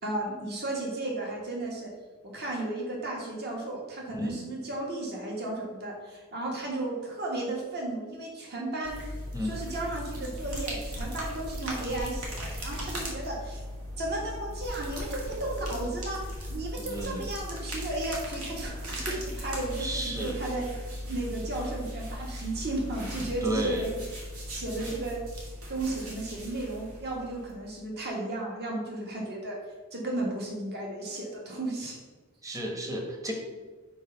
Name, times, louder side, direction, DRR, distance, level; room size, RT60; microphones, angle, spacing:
voice 1, 0.0-1.9 2.2-9.0 9.4-13.6 14.0-24.0 24.5-25.2 25.7-29.6 29.9-32.0, right 2 dB, 45° right, -2 dB, 1.6 m, -34 dB
sound 1, 8.8-27.7, equal, 70° right, 2.1 m, -38 dB
voice 2, 16.8-17.2 19.8-20.3 23.4-23.8 32.4-33.3, equal, 15° right, 1 dB, 1.1 m, -32 dB
6.4 x 4.4 x 5.8 m, 1.3 s
head